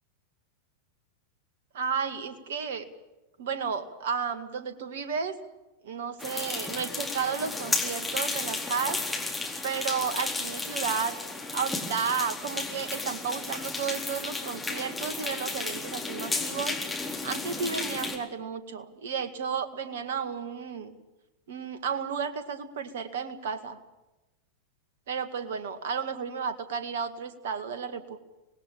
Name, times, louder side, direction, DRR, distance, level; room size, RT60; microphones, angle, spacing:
voice 1, 1.7-2.9 3.4-5.4 5.8-9.0 9.6-11.2 11.5-16.7 17.2-20.9 21.5-23.8 25.1-28.2, right 6 dB, 55° right, 11 dB, 2.0 m, -32 dB
sound 1, 6.2-18.2, left 3 dB, 5° left, 4.1 m, -33 dB
25.5 x 19.5 x 7.2 m, 1.0 s
figure-of-eight pair, 90°, 0 cm